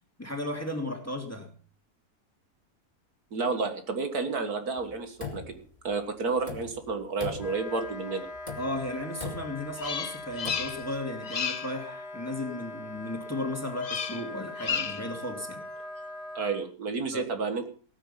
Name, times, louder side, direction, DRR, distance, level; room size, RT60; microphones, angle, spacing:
voice 1, 0.2-1.5 8.6-15.6 17.1-17.3, left 1 dB, 10° left, 3 dB, 2.7 m, -35 dB
voice 2, 3.3-5.6 5.8-8.3 16.4-17.7, right 4 dB, 70° right, 7 dB, 2.2 m, -31 dB
sound 1, 4.8-5.9 6.3-6.9 7.2-7.9 8.4-8.9 9.2-9.7 10.3-10.8, left 4 dB, 25° left, 2.8 m, -40 dB
Wind instrument woodwind instrument, 7.3-16.6, left 2 dB, 90° left, 2.8 m, -41 dB
Bird vocalization bird call bird song, 9.8-11.0 11.2-11.8 13.8-14.3 14.6-15.1, left 6 dB, 45° left, 0.5 m, -32 dB
19.0 x 9.0 x 5.7 m, 0.42 s
omnidirectional pair, 1.7 m